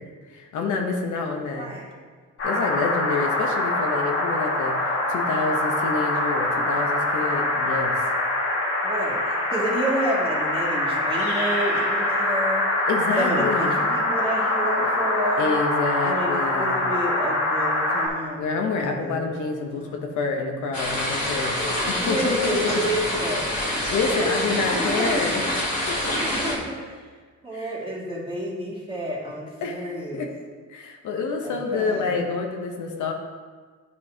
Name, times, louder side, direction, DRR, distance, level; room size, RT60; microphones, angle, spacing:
voice 1, 0.3-1.7 2.4-8.0 12.9-13.8 15.4-16.9 18.4-22.8 23.9-25.4 25.9-26.1 27.5-27.8 29.6-29.8 30.1-30.3 30.7-33.1, left 4 dB, 80° left, 2 dB, 0.9 m, -28 dB
voice 2, 1.6-1.9 8.8-12.9 13.2-15.5 16.0-20.1 21.7-23.5 24.1-25.1 26.2-27.1 27.4-30.3 31.4-32.3, right 1 dB, 15° right, -6 dB, 2.1 m, -30 dB
sound 1, 2.4-18.1, left 1 dB, 50° left, 1.9 m, -24 dB
sound 2, 20.7-26.6, left 1 dB, 25° left, 2.0 m, -26 dB
9.4 x 5.3 x 2.8 m, 1.5 s
cardioid pair, 90°, 30 cm